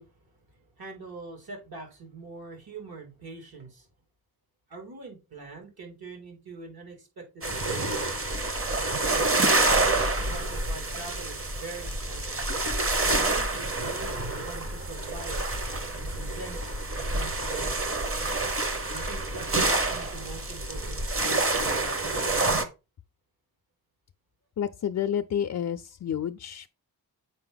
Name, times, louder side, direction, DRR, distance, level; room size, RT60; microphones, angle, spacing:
voice 1, 0.0-3.9 4.7-8.1 9.5-12.4 13.0-15.4 15.9-17.8 18.9-22.4, right 4 dB, 65° right, 3.1 m, -43 dB
sound 1, 7.4-22.6, right 2 dB, 35° right, 1.1 m, -28 dB
voice 2, 24.6-26.7, left 9 dB, 50° left, 0.4 m, -30 dB
7.6 x 5.1 x 3.9 m
wide cardioid pair, 155°, 39 cm